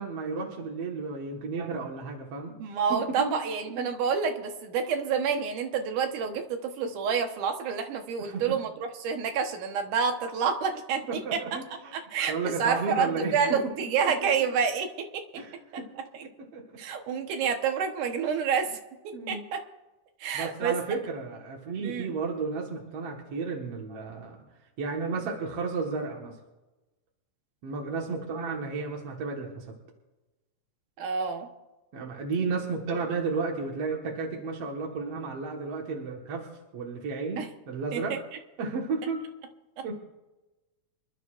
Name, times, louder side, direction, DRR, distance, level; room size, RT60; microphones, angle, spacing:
voice 1, 0.0-2.6 2.9-3.3 3.8-3.9 8.2-8.6 11.1-11.9 12.3-13.6 14.2-14.3 15.4-15.9 16.2-16.6 19.1-19.4 20.3-24.4 24.8-26.4 27.6-29.8 31.9-36.5 36.7-38.2 38.6-39.2 39.8-39.9, right 4 dB, 55° right, -1 dB, 2.3 m, -33 dB
voice 2, 2.6-11.4 11.9-12.3 12.6-15.2 16.1-16.2 16.8-18.8 19.0-19.6 20.2-20.8 21.8-22.1 31.0-31.5 37.4-37.5 37.9-38.2 39.8-39.9, right 6 dB, 80° right, 5 dB, 2.7 m, -28 dB
27.0 x 12.0 x 2.5 m, 1.1 s
omnidirectional pair, 3.6 m